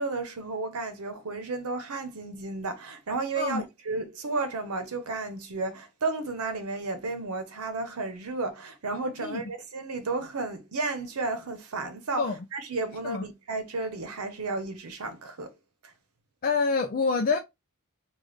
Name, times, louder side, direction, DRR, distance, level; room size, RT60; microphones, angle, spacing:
voice 1, 0.0-15.5 15.8-15.9, right 3 dB, 85° right, 0.8 m, -33 dB
voice 2, 16.4-17.4, left 4 dB, 40° left, 0.4 m, -26 dB
3.3 x 2.4 x 3.9 m
head